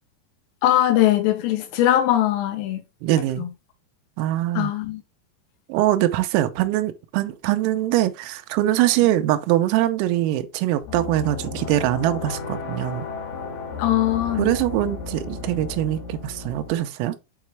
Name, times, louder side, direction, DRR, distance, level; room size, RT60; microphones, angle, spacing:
voice 1, 0.6-2.8 3.4-3.5 4.5-5.0 13.8-14.5, left 13 dB, 80° left, 3.3 m, -21 dB
voice 2, 3.0-3.5 4.2-4.7 5.7-13.1 14.4-17.2, right 14 dB, 85° right, 3.4 m, -23 dB
sound 1, 10.8-16.7, left 5 dB, 60° left, 3.4 m, -34 dB
8.3 x 4.8 x 3.2 m
omnidirectional pair, 5.9 m